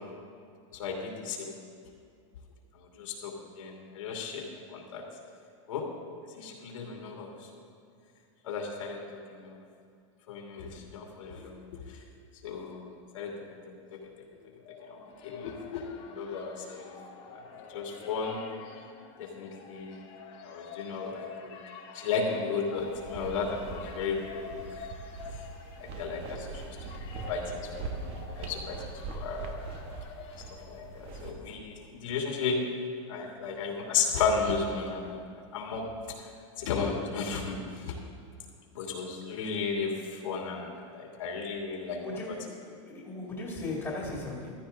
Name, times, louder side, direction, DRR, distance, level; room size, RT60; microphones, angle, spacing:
voice 1, 0.7-1.5 2.8-4.4 4.7-5.0 5.7-5.8 6.4-7.3 8.4-9.6 10.3-11.6 12.4-13.3 14.9-16.9 17.3-17.4 17.7-18.5 19.2-20.0 20.4-21.6 21.9-24.6 25.8-26.8 27.3-28.8 29.1-29.5 30.7-32.6 33.1-35.1 35.5-35.9 36.6-37.9 38.7-42.0 42.3-42.4, left 5 dB, 80° left, 0 dB, 2.7 m, -34 dB
sound 1, 14.3-31.3, left 5 dB, 35° left, 1.7 m, -47 dB
sound 2, 22.8-31.3, right 4 dB, 35° right, 1.3 m, -42 dB
voice 2, 42.0-44.5, left 2 dB, 10° left, -3 dB, 2.2 m, -37 dB
15.0 x 12.5 x 3.8 m, 2.4 s
supercardioid pair, 160°, 17 cm